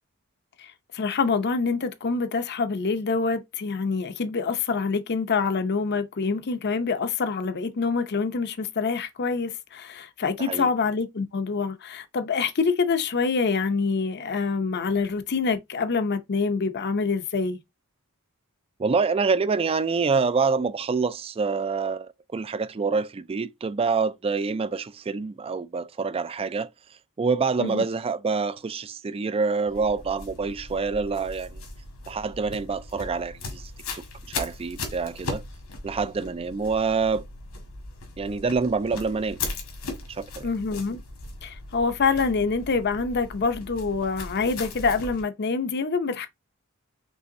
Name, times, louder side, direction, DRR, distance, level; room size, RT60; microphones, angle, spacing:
voice 1, 0.6-17.6 27.6-27.8 40.4-41.0 41.4-46.3, left 4 dB, 50° left, 0.6 m, -26 dB
voice 2, 10.4-10.7 18.8-26.7 27.2-31.6 32.1-33.6 33.9-35.4 35.8-37.2 38.2-39.4 40.1-40.5, right 4 dB, 25° right, 0.3 m, -26 dB
sound 1, 29.7-45.2, left 3 dB, 85° left, 1.8 m, -38 dB
5.4 x 3.3 x 2.7 m
head